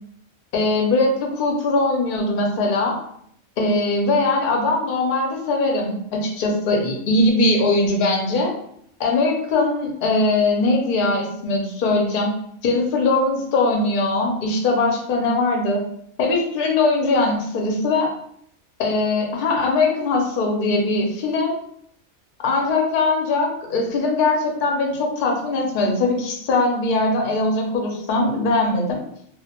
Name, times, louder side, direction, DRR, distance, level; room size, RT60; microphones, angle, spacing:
voice 1, 0.5-3.0 3.6-8.5 9.0-12.3 12.6-15.9 16.2-18.1 18.8-21.5 22.4-29.0, left 2 dB, 55° left, 1 dB, 0.6 m, -21 dB
2.2 x 2.1 x 2.8 m, 0.70 s
omnidirectional pair, 1.3 m